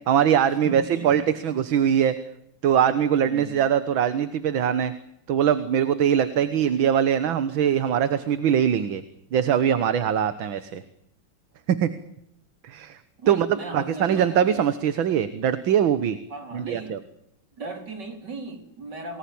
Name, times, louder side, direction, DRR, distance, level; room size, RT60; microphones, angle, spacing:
voice 1, 0.1-2.1 2.6-4.9 5.3-9.0 9.3-10.8 11.7-11.9 12.6-13.0 13.3-13.5 13.7-16.2 16.5-17.0, right 9 dB, 75° right, 12 dB, 2.0 m, -22 dB
voice 2, 0.6-1.3 3.2-3.6 6.4-6.6 13.2-14.6 16.3-17.0 17.5-19.2, right 3 dB, 55° right, 6 dB, 4.8 m, -37 dB
29.0 x 19.5 x 8.8 m, 0.79 s
omnidirectional pair, 2.2 m